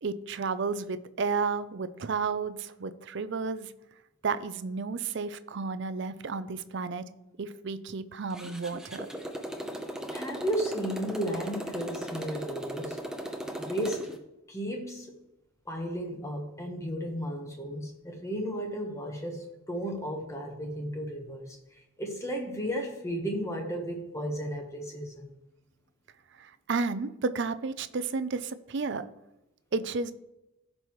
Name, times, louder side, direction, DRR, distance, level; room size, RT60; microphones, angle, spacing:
voice 1, 0.0-3.7 4.2-7.1 7.4-9.1 26.4-29.1 29.7-30.1, right 4 dB, 55° right, 13 dB, 0.5 m, -32 dB
Motorcycle, 8.3-14.2, equal, 5° right, 0.7 m, -38 dB
voice 2, 10.1-13.0 13.6-14.1 14.5-15.1 15.6-25.3, equal, 15° left, 2 dB, 1.2 m, -34 dB
15.0 x 5.4 x 3.1 m, 0.94 s
head